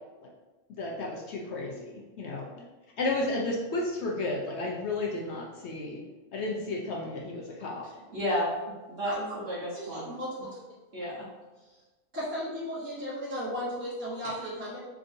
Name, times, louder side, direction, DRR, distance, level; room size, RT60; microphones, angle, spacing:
voice 1, 0.7-2.7 3.0-6.0 6.3-7.9, left 2 dB, 60° left, -2 dB, 0.8 m, -33 dB
voice 2, 8.1-8.5 8.9-10.1 10.4-10.5 10.9-11.3 14.2-14.3, equal, 50° right, -7 dB, 1.1 m, -32 dB
voice 3, 9.7-10.5 12.1-14.8, equal, 10° right, -8 dB, 0.8 m, -35 dB
3.9 x 3.5 x 2.6 m, 1.2 s
omnidirectional pair, 1.6 m